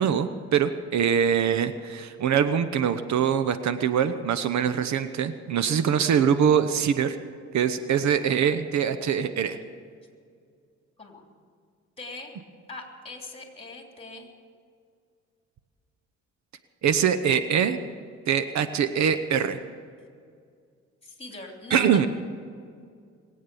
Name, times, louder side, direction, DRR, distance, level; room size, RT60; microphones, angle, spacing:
voice 1, 0.0-7.2 7.5-9.6 16.8-17.8 18.3-19.6 21.7-22.1, right 8 dB, 65° right, 12 dB, 0.9 m, -23 dB
voice 2, 12.0-12.3 12.7-14.3 21.0-22.1, left 2 dB, 20° left, 2 dB, 3.3 m, -41 dB
21.5 x 8.6 x 7.0 m, 2.2 s
cardioid pair, 90°, 30 cm